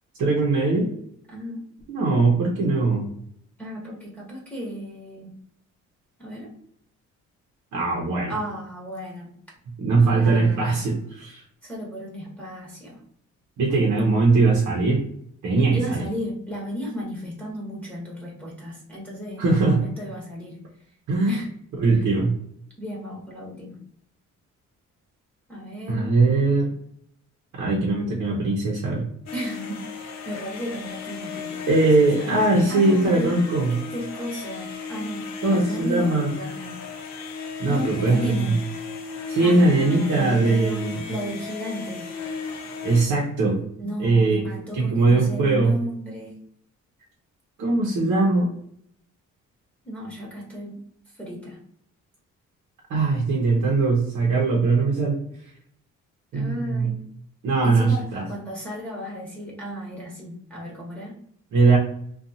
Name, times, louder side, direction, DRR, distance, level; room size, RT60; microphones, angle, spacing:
voice 1, 0.2-0.9 1.9-3.1 7.7-8.3 9.8-11.4 13.6-15.0 15.4-16.0 19.4-19.8 21.1-21.3 21.8-22.4 25.9-26.7 27.6-29.1 31.7-33.8 35.4-36.3 37.6-38.5 39.3-41.0 42.8-43.6 44.0-44.5 44.7-45.7 47.6-48.5 52.9-55.2 56.3-56.9 57.4-58.2 61.5-61.8, right 3 dB, 70° right, -2 dB, 0.8 m, -20 dB
voice 2, 1.3-1.7 3.6-5.4 6.2-6.5 8.3-9.3 10.1-10.8 11.6-13.0 13.7-13.8 15.7-20.6 21.3-21.5 21.9-22.0 22.8-23.8 25.5-26.1 29.3-32.3 32.7-33.4 33.7-36.8 37.7-38.6 39.4-42.1 43.8-46.4 49.8-50.8 51.1-51.6 56.3-57.0 57.6-61.2, equal, 5° left, -5 dB, 1.0 m, -34 dB
sound 1, 29.3-43.1, left 5 dB, 60° left, 0.7 m, -35 dB
2.5 x 2.3 x 2.7 m, 0.68 s
cardioid pair, 90°, 30 cm